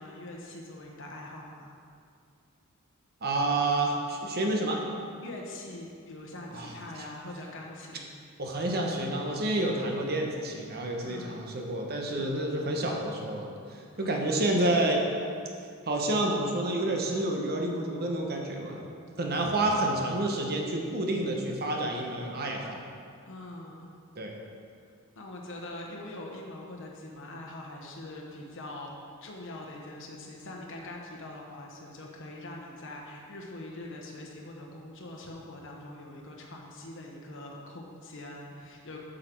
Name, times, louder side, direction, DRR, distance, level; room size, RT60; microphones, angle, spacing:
voice 1, 0.0-1.8 5.2-8.1 11.0-11.4 12.1-12.4 14.0-14.3 19.3-19.6 23.3-24.0 25.2-28.9 29.2-39.0, left 1 dB, 60° left, -1 dB, 0.9 m, -43 dB
voice 2, 3.2-4.8 6.5-7.0 8.4-15.0 15.9-18.8 19.2-22.8 24.1-24.4, right 1 dB, 45° right, 1 dB, 1.0 m, -29 dB
7.7 x 6.5 x 4.5 m, 2.3 s
head